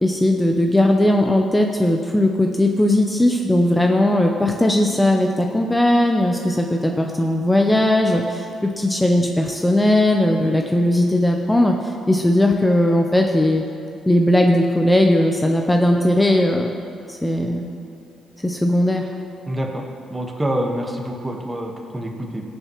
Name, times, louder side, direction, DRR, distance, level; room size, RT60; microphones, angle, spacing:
voice 1, 0.0-11.8 12.1-13.6 14.1-16.7 17.1-17.7 18.4-19.1, left 1 dB, 10° left, 2 dB, 0.7 m, -18 dB
voice 2, 19.5-19.8 20.1-22.4, right 1 dB, 15° right, 0 dB, 1.3 m, -26 dB
19.5 x 7.0 x 3.0 m, 2.5 s
cardioid pair, 90°, 0 cm